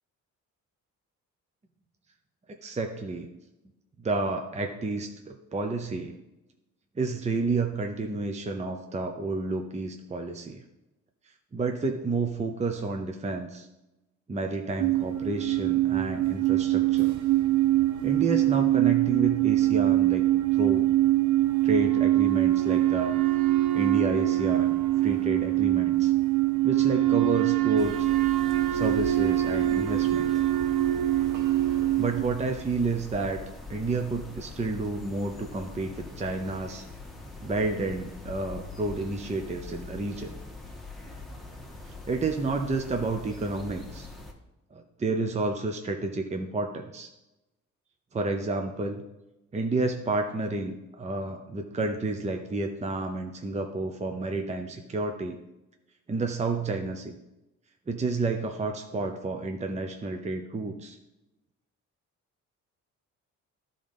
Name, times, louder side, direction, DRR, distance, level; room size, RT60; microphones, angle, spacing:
voice 1, 2.6-3.3 4.0-6.1 7.0-10.6 11.5-13.7 14.3-17.2 18.0-20.2 20.5-20.9 21.6-23.1 23.7-24.7 25.0-26.1 26.6-28.1 28.7-30.3 32.0-33.4 33.7-36.8 37.4-40.3 42.1-44.1 44.7-47.1 48.1-49.0 49.5-55.4 56.1-57.1 57.9-61.0, right 3 dB, 20° right, 4 dB, 0.7 m, -30 dB
sound 1, 14.8-32.2, right 15 dB, 75° right, 0.8 m, -24 dB
sound 2, 27.8-44.3, left 3 dB, ahead, 1.2 m, -43 dB
11.5 x 3.9 x 5.3 m, 0.98 s
cardioid pair, 90°, 30 cm